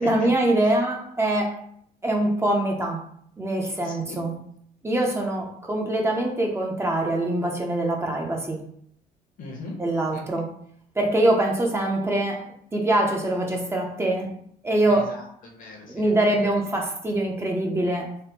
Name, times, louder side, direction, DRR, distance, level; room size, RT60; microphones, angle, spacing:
voice 1, 0.0-1.6 2.0-3.0 3.4-4.3 4.8-8.6 9.8-10.5 11.0-12.4 12.7-14.3 14.6-15.2 15.9-18.1, right 1 dB, 15° right, 0 dB, 0.5 m, -24 dB
voice 2, 3.8-4.2 9.4-9.8 10.1-10.3 14.8-16.5, left 3 dB, 50° left, 1 dB, 0.9 m, -39 dB
3.4 x 2.0 x 2.8 m, 0.67 s
cardioid pair, 110°, 17 cm